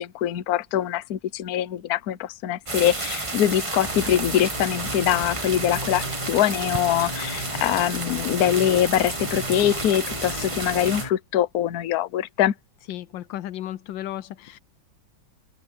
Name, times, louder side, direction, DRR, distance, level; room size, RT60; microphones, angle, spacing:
voice 1, 0.0-12.5, left 11 dB, 60° left, 1.2 m, -23 dB
sound 1, 2.7-11.1, right 3 dB, 20° right, 1.1 m, -31 dB
sound 2, 3.8-11.1, left 1 dB, 20° left, 3.2 m, -36 dB
voice 2, 12.9-14.6, left 13 dB, 80° left, 1.3 m, -34 dB
open air
omnidirectional pair, 2.1 m